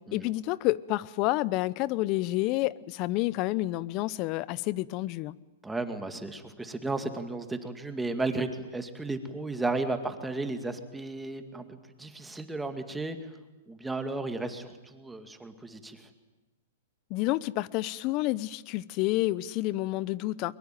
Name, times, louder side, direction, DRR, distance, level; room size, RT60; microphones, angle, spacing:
voice 1, 0.1-5.4 17.1-20.5, left 18 dB, 40° left, 0.8 m, -29 dB
voice 2, 5.6-13.3 13.7-16.1, right 2 dB, 5° right, 2.2 m, -34 dB
23.0 x 22.0 x 9.3 m
hypercardioid pair, 130°, 0 cm